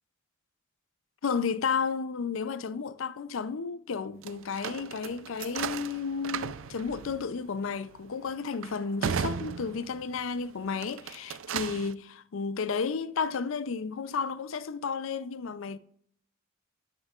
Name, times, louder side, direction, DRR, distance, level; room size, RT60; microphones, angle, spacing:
voice 1, 1.2-15.8, left 5 dB, 65° left, 0.5 m, -32 dB
sound 1, 4.2-10.3 10.7-11.9, right 7 dB, 65° right, 0.4 m, -36 dB
12.0 x 9.8 x 2.4 m
head